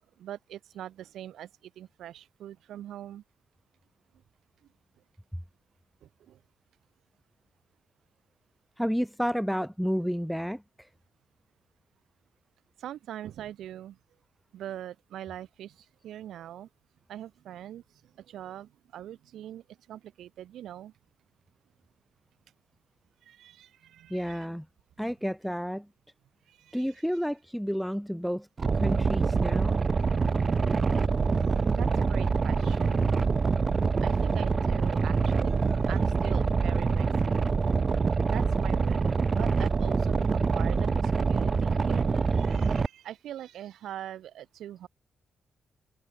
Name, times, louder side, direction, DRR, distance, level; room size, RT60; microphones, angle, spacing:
voice 1, 0.2-3.2 6.0-6.4 12.8-14.0 14.5-16.7 17.1-20.9 23.2-24.5 26.5-26.9 31.4-33.1 34.0-37.6 38.3-39.0 39.3-44.9, right 11 dB, 90° right, 4.4 m, -42 dB
voice 2, 8.8-10.9 24.1-24.6 25.0-25.9 26.7-28.5 28.7-29.8, equal, ahead, 3.4 m, -31 dB
Boat Water vehicle, 28.6-42.9, right 4 dB, 30° right, 1.3 m, -25 dB
cardioid pair, 145°, 0 cm